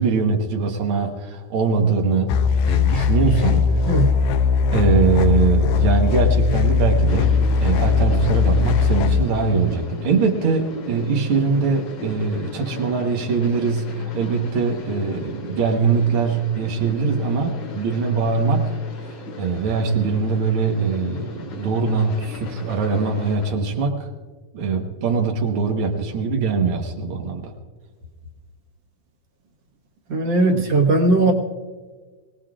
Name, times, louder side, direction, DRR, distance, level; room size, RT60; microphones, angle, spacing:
voice 1, 0.0-2.3 2.7-3.9 4.7-18.7 19.4-24.1 24.5-27.5 30.5-30.6 31.2-31.3, right 4 dB, 80° right, 2 dB, 1.2 m, -22 dB
sound 1, 2.3-9.2, left 5 dB, 75° left, 2.3 m, -19 dB
sound 2, 7.1-23.6, left 3 dB, 50° left, 2.3 m, -38 dB
voice 2, 30.1-31.3, right 2 dB, 55° right, 2 dB, 2.1 m, -18 dB
25.0 x 18.5 x 2.5 m, 1.4 s
omnidirectional pair, 4.5 m